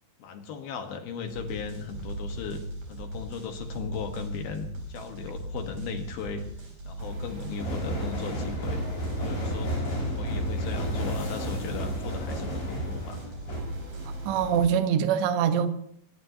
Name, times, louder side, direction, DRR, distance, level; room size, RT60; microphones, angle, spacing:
voice 1, 0.2-2.6 2.9-6.4 6.8-8.8 9.2-9.8 10.1-13.2, left 5 dB, 65° left, 2.8 m, -37 dB
sound 1, 1.3-14.7, right 1 dB, 40° right, 7.2 m, -38 dB
Underneath a railway bridge, 7.6-13.6, equal, 45° left, 7.0 m, -32 dB
voice 2, 14.3-15.7, right 8 dB, 75° right, 3.4 m, -24 dB
25.0 x 19.5 x 2.8 m
omnidirectional pair, 5.4 m